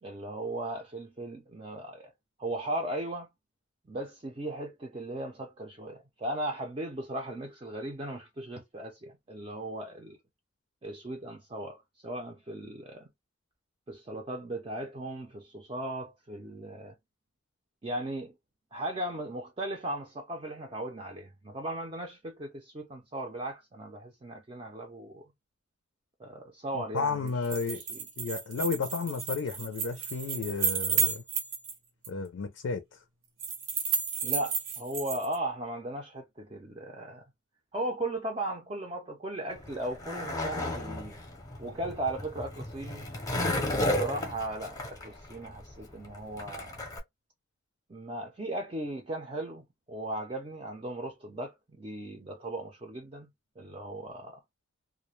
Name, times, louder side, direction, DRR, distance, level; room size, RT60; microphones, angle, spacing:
voice 1, 0.0-2.1 2.4-3.3 3.9-10.2 10.8-13.1 13.9-17.0 17.8-18.3 18.7-25.3 26.2-27.3 27.9-28.0 34.2-37.3 37.7-41.1 41.6-43.1 43.7-46.8 47.9-53.3 53.6-54.4, right 1 dB, 25° right, 0.4 m, -37 dB
voice 2, 26.7-27.8 28.2-31.2 32.1-33.0, left 5 dB, 80° left, 0.4 m, -33 dB
sound 1, 27.3-31.7 32.0-32.1 33.4-35.4, right 7 dB, 85° right, 0.8 m, -32 dB
Skateboard, 39.5-47.0, left 1 dB, 20° left, 0.6 m, -33 dB
2.4 x 2.1 x 3.0 m
head